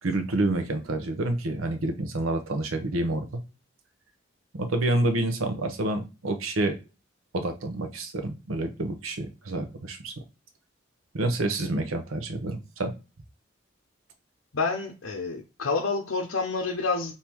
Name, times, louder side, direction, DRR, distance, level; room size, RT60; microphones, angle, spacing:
voice 1, 0.0-3.4 4.5-6.7 7.3-10.2 11.1-12.9, right 2 dB, 90° right, 7 dB, 0.8 m, -28 dB
voice 2, 14.5-17.1, left 4 dB, 80° left, -1 dB, 0.7 m, -28 dB
3.5 x 2.8 x 4.5 m, 0.30 s
head